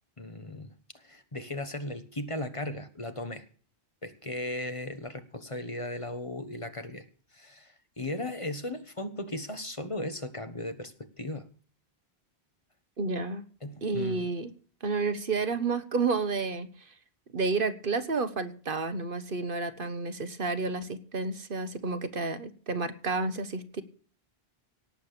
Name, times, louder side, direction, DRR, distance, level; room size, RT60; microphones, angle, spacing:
voice 1, 0.2-0.7 0.9-3.4 4.0-7.1 7.3-11.5 13.6-14.3, left 1 dB, 30° left, 9 dB, 1.4 m, -37 dB
voice 2, 13.0-13.4 13.8-14.5 14.8-16.9 17.3-23.8, right 4 dB, 55° right, 12 dB, 1.3 m, -30 dB
18.0 x 7.7 x 6.8 m, 0.43 s
omnidirectional pair, 1.1 m